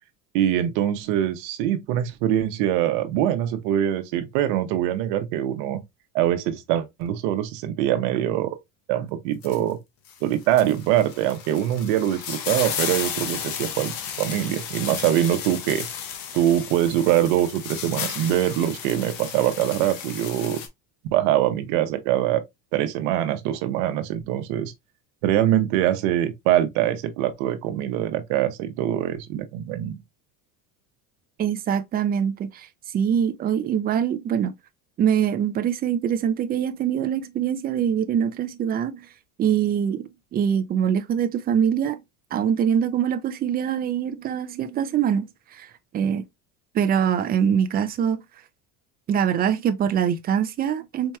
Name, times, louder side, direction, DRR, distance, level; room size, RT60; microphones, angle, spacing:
voice 1, 0.3-5.8 6.1-8.6 8.9-9.8 10.2-15.9 16.3-20.6 21.1-22.4 22.7-24.7 25.2-30.0, right 12 dB, 75° right, 0.8 m, -23 dB
sound 1, 9.4-9.6 10.1-20.7, left 8 dB, 60° left, 1.0 m, -33 dB
voice 2, 31.4-32.7 32.9-34.5 35.0-39.1 39.4-42.0 42.3-45.7 45.9-46.2 46.7-48.2 49.1-51.2, right 8 dB, 25° right, 0.4 m, -23 dB
4.5 x 2.9 x 2.2 m
cardioid pair, 135°, 39 cm